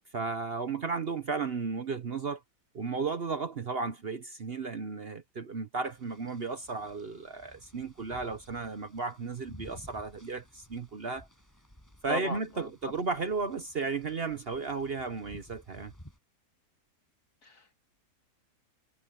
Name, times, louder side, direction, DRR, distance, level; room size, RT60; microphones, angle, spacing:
voice 1, 0.1-2.4 2.7-11.3 12.0-15.9, right 4 dB, 45° right, 1.1 m, -34 dB
sound 1, 5.8-16.2, equal, 10° left, 7.8 m, -55 dB
voice 2, 12.1-12.7 17.4-17.8, left 4 dB, 80° left, 3.6 m, -37 dB
omnidirectional pair, 1.6 m